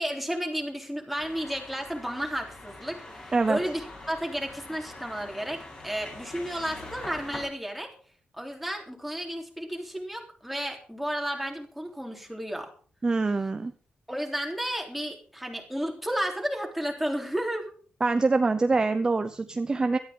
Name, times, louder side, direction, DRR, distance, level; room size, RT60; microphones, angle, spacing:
voice 1, 0.0-7.9 8.3-12.7 14.1-17.7, equal, ahead, 1 dB, 3.5 m, -32 dB
sound 1, 1.2-7.5, left 2 dB, 30° left, 6.6 m, -43 dB
voice 2, 13.0-13.7 18.0-20.0, right 3 dB, 25° right, 9 dB, 0.8 m, -24 dB
18.0 x 13.5 x 3.8 m, 0.43 s
wide cardioid pair, 135°, 3 cm